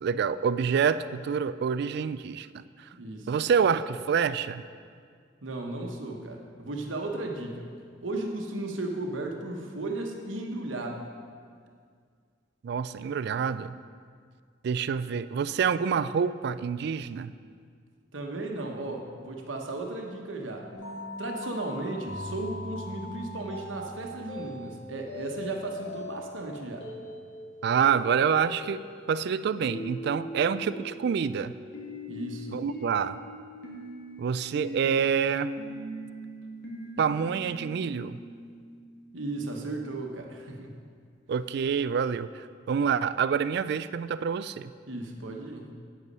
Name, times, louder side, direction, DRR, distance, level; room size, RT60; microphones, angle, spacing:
voice 1, 0.0-2.9 3.3-4.6 12.6-13.8 14.6-17.3 27.6-31.5 32.5-33.2 34.2-35.5 37.0-38.2 41.3-44.7, right 7 dB, 60° right, 15 dB, 0.3 m, -27 dB
voice 2, 2.9-3.3 5.4-7.6 8.0-11.0 18.1-20.6 21.2-26.8 32.1-32.6 39.1-40.7 44.9-45.7, right 2 dB, 85° right, 2 dB, 1.1 m, -35 dB
sound 1, 20.7-39.2, left 1 dB, 85° left, 2.2 m, -41 dB
9.0 x 8.2 x 5.4 m, 2.1 s
head